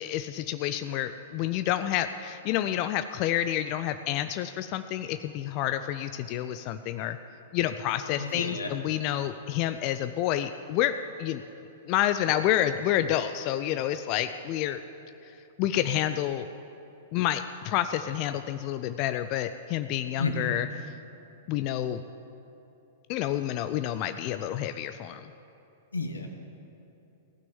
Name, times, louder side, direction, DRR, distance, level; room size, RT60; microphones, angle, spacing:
voice 1, 0.0-7.2 7.5-11.4 11.9-14.8 15.2-15.3 15.6-16.5 17.1-20.9 21.5-22.0 23.1-25.3, left 12 dB, 45° left, 10 dB, 0.4 m, -29 dB
voice 2, 8.2-8.7 20.2-20.5 25.9-26.3, left 3 dB, 90° left, 4 dB, 1.4 m, -31 dB
16.0 x 6.1 x 9.6 m, 2.9 s
hypercardioid pair, 105°, 0 cm